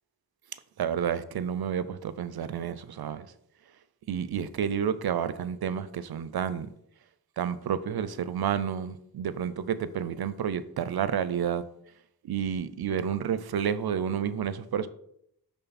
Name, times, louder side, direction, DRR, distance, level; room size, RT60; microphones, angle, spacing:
voice 1, 0.8-3.2 4.1-6.7 7.4-11.6 12.2-14.9, right 8 dB, 70° right, 0.5 m, -30 dB
10.0 x 3.6 x 4.1 m
cardioid pair, 45°, 39 cm